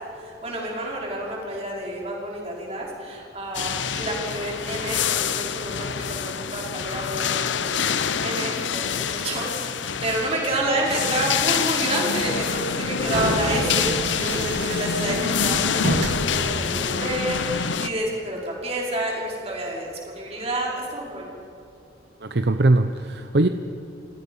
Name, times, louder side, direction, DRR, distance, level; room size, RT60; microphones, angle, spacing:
voice 1, 0.2-7.9 8.2-8.9 9.1-21.3, right 1 dB, 35° right, -3 dB, 5.3 m, -29 dB
sound 1, 3.5-17.9, left 7 dB, 85° left, 0.8 m, -26 dB
sound 2, 12.4-17.4, right 1 dB, 80° right, 1.9 m, -30 dB
voice 2, 22.2-23.5, right 2 dB, 60° right, 8 dB, 0.8 m, -20 dB
28.5 x 18.0 x 5.6 m, 2.8 s
head